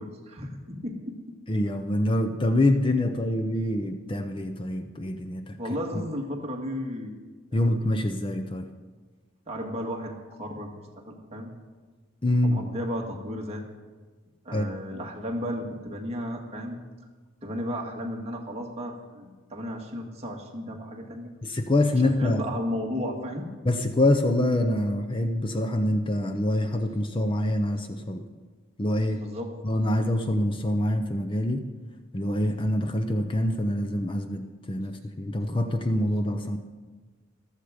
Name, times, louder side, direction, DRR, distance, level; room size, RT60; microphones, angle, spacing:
voice 1, 0.0-1.4 5.6-7.1 7.5-7.6 9.5-11.5 12.4-13.6 14.5-16.8 17.4-21.3 21.9-23.5 29.2-29.5, equal, 30° right, 0 dB, 1.9 m, -34 dB
voice 2, 1.5-5.6 7.5-8.7 12.2-12.6 14.5-14.9 21.4-22.4 23.6-28.2 28.8-29.2 29.6-31.6 32.1-36.6, left 1 dB, 25° left, 7 dB, 0.7 m, -25 dB
15.0 x 13.0 x 5.0 m, 1.3 s
head